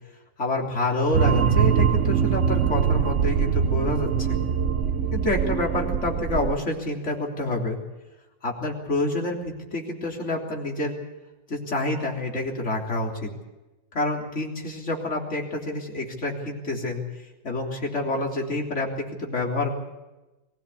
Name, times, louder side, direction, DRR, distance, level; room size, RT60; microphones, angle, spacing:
voice 1, 0.4-4.4 5.1-7.8 8.4-10.9 11.5-13.3 13.9-17.0 17.4-19.7, left 2 dB, 35° left, 0 dB, 3.8 m, -28 dB
sound 1, 1.1-6.6, right 7 dB, 55° right, 0.9 m, -23 dB
23.0 x 16.5 x 8.5 m, 1.1 s
omnidirectional pair, 2.2 m